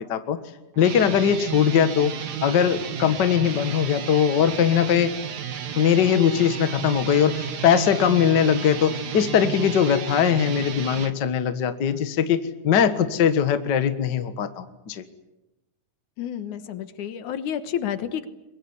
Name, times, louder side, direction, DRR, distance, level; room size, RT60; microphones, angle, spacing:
sound 1, 0.7-11.1, right 8 dB, 60° right, 1.0 m, -33 dB
voice 1, 0.8-2.1 2.4-5.1 5.7-15.0, left 8 dB, 45° left, 10 dB, 1.6 m, -21 dB
voice 2, 16.2-18.3, left 9 dB, 75° left, 12 dB, 2.6 m, -30 dB
23.5 x 22.0 x 9.7 m, 0.95 s
omnidirectional pair, 3.6 m